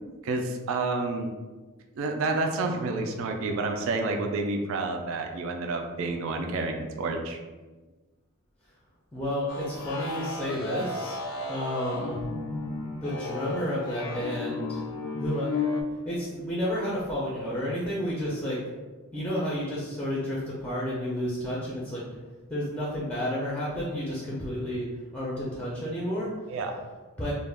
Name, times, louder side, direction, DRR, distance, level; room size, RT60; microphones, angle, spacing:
voice 1, 0.2-1.3 2.0-7.4 26.5-26.8, right 3 dB, 65° right, 4 dB, 0.3 m, -29 dB
voice 2, 9.1-11.2 11.5-12.2 13.0-14.8 15.2-15.5 16.0-18.6 19.1-22.0 22.5-24.9 25.1-26.3 27.2-27.3, equal, 5° left, -6 dB, 0.4 m, -31 dB
sound 1, 9.5-15.8, left 3 dB, 80° left, 0.4 m, -34 dB
2.3 x 2.1 x 3.3 m, 1.3 s
head